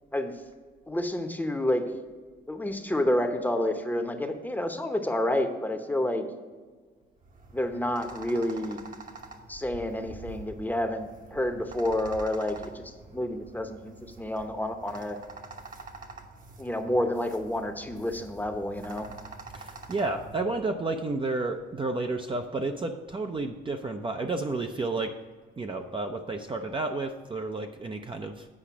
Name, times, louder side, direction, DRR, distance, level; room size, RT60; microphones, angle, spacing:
voice 1, 0.9-1.8 2.5-6.3 7.5-8.8 9.5-12.8 13.1-15.2 16.6-19.1, left 1 dB, 10° left, 6 dB, 0.9 m, -29 dB
sound 1, 7.2-20.4, right 3 dB, 45° right, 1.1 m, -46 dB
voice 2, 19.5-25.1 25.6-28.5, right 3 dB, 25° right, 4 dB, 0.6 m, -31 dB
8.5 x 5.0 x 6.0 m, 1.5 s
cardioid pair, 90°, 20 cm